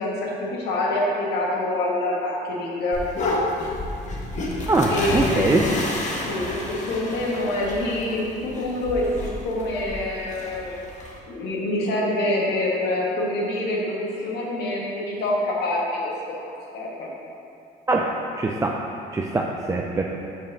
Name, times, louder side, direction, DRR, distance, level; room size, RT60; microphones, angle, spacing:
voice 1, 0.0-3.0 4.9-5.5 6.2-10.8 11.3-16.4 16.7-17.1, left 1 dB, 75° left, -3 dB, 1.7 m, -26 dB
sound 1, 2.9-11.2, left 2 dB, 45° left, 1.2 m, -30 dB
voice 2, 4.7-5.6 17.9-18.8 19.1-20.0, right 2 dB, 15° right, 0 dB, 0.4 m, -23 dB
5.3 x 5.1 x 6.2 m, 2.6 s
cardioid pair, 110°, 17 cm